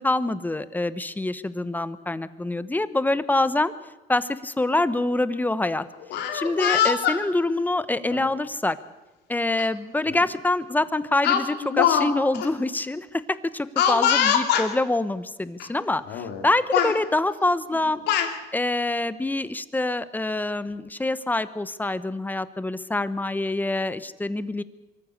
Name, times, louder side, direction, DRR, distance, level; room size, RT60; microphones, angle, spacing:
voice 1, 0.0-3.7 4.1-5.8 6.3-8.8 9.3-18.0 18.5-24.6, left 2 dB, 10° left, 14 dB, 1.0 m, -25 dB
Speech, 6.0-7.2 8.1-8.3 9.6-9.7 10.1-10.3 11.2-12.1 12.3-12.5 13.8-14.7 15.6-15.7 16.1-16.4 16.7-17.0 17.7-18.3, left 9 dB, 85° left, 2.5 m, -23 dB
24.0 x 14.5 x 8.2 m, 1.1 s
cardioid pair, 110°, 17 cm